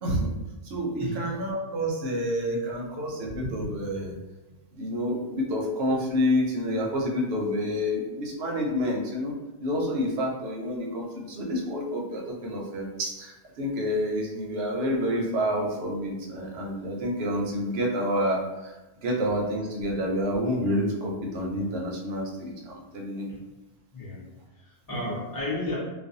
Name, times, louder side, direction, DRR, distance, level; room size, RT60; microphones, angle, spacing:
voice 1, 0.0-0.3 0.6-4.1 4.7-9.3 9.6-18.8 19.0-23.3, equal, 65° right, -1 dB, 0.7 m, -28 dB
voice 2, 1.0-1.3 23.3-23.4 23.9-24.2 24.5-25.8, left 2 dB, 25° left, -9 dB, 0.6 m, -33 dB
2.4 x 2.2 x 2.5 m, 1.1 s
omnidirectional pair, 1.2 m